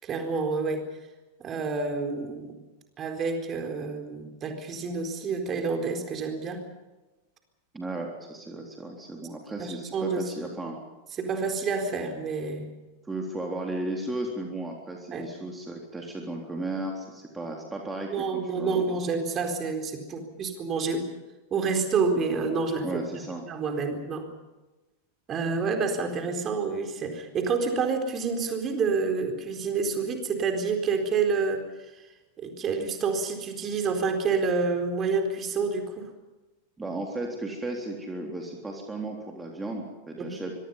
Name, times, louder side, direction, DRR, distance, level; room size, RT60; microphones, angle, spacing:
voice 1, 0.0-0.9 1.4-2.5 3.0-6.6 9.6-10.3 11.2-12.7 15.1-15.3 18.1-21.1 21.5-23.0 23.5-24.3 25.3-31.6 32.4-36.1 40.2-40.4, right 4 dB, 25° right, 5 dB, 4.2 m, -28 dB
voice 2, 7.7-10.8 13.1-19.0 22.8-23.5 36.8-40.6, right 2 dB, 10° right, 1 dB, 3.6 m, -35 dB
25.0 x 24.0 x 5.7 m, 1.1 s
figure-of-eight pair, 90°, 0 cm